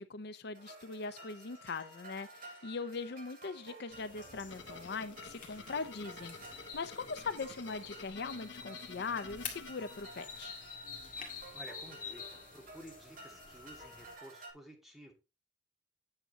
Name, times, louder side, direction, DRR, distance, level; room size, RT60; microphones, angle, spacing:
voice 1, 0.0-6.4 6.7-10.6, left 4 dB, 60° left, 12 dB, 0.6 m, -41 dB
sound 1, 0.5-14.5, right 2 dB, 50° right, 6.1 m, -53 dB
sound 2, 3.9-14.1, left 6 dB, 45° left, 2.2 m, -49 dB
sound 3, 4.5-10.5, left 5 dB, 80° left, 1.2 m, -52 dB
voice 2, 11.5-15.1, equal, ahead, 1 dB, 2.2 m, -54 dB
8.9 x 6.9 x 4.0 m, 0.29 s
head